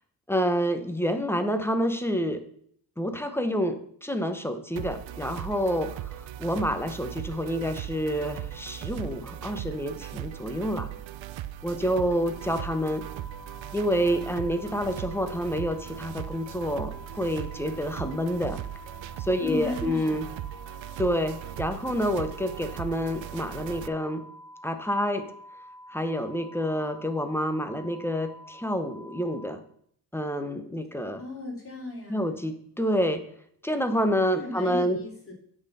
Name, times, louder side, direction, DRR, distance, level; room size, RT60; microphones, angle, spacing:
voice 1, 0.3-2.4 3.0-10.9 11.6-13.0 13.7-18.6 19.2-20.3 21.0-24.2 24.6-25.3 25.9-29.6 30.1-31.2 32.1-33.2 33.6-35.0, equal, 5° left, 8 dB, 0.8 m, -28 dB
sound 1, 4.8-23.9, right 12 dB, 80° right, 0.6 m, -38 dB
sound 2, 12.3-29.5, equal, 50° left, 2.7 m, -48 dB
voice 2, 19.4-20.2 31.2-32.4 34.3-35.3, left 2 dB, 30° left, -2 dB, 2.9 m, -36 dB
8.7 x 4.3 x 6.8 m, 0.64 s
wide cardioid pair, 125°, 45 cm